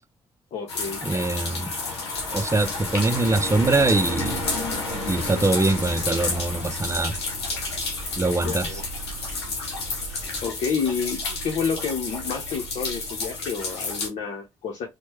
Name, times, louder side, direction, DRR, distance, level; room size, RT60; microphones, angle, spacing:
voice 1, 0.5-1.0 8.4-8.8 10.4-14.9, left 6 dB, 60° left, 0.9 m, -29 dB
sound 1, 0.7-14.1, left 3 dB, 90° left, 0.8 m, -31 dB
voice 2, 1.0-1.7 2.3-4.4 5.1-7.1 8.2-8.8, right 2 dB, 20° right, 0.6 m, -23 dB
sound 2, 2.1-10.5, left 1 dB, ahead, 0.9 m, -43 dB
sound 3, 3.5-13.4, right 10 dB, 80° right, 0.6 m, -43 dB
4.4 x 2.2 x 3.0 m
hypercardioid pair, 40°, 13 cm